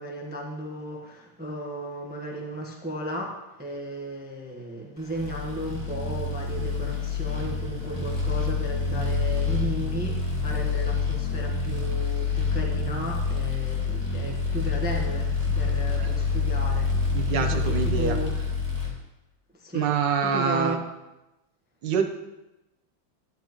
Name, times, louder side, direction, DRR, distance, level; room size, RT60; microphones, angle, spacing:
voice 1, 0.0-15.3 15.5-17.6 17.8-18.3 19.6-19.9 20.2-20.8, right 1 dB, 5° right, 0 dB, 0.7 m, -34 dB
sound 1, 5.1-18.9, left 4 dB, 20° left, 1.8 m, -27 dB
voice 2, 17.1-18.2 19.7-20.8 21.8-22.1, right 6 dB, 65° right, 5 dB, 1.5 m, -26 dB
11.5 x 11.0 x 3.0 m, 0.98 s
omnidirectional pair, 2.3 m